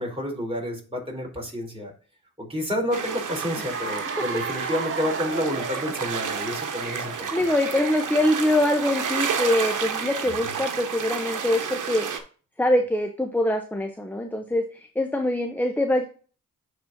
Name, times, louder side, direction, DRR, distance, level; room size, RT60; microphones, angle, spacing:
voice 1, 0.0-1.9 2.4-7.3, left 1 dB, 15° right, -1 dB, 4.0 m, -29 dB
sound 1, 2.9-12.2, right 6 dB, 70° right, 1.2 m, -31 dB
Cheering / Applause, 3.5-8.7, right 5 dB, 40° right, 1.0 m, -35 dB
voice 2, 7.3-12.1 12.6-16.1, left 1 dB, 5° left, 5 dB, 0.8 m, -24 dB
10.5 x 4.3 x 2.7 m, 0.38 s
cardioid pair, 55°, 32 cm